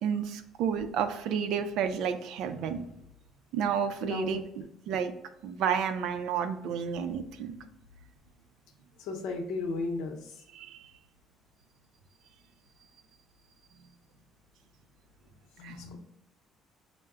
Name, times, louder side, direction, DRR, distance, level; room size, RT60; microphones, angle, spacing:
voice 1, 0.0-2.8 3.5-4.4 4.9-5.1 5.4-7.6 10.5-10.9 15.6-15.8, right 7 dB, 70° right, 9 dB, 0.4 m, -31 dB
voice 2, 4.0-4.4 9.0-10.4 15.6-16.0, left 3 dB, 85° left, 3 dB, 0.7 m, -35 dB
5.6 x 2.1 x 3.5 m, 0.80 s
cardioid pair, 155°, 0 cm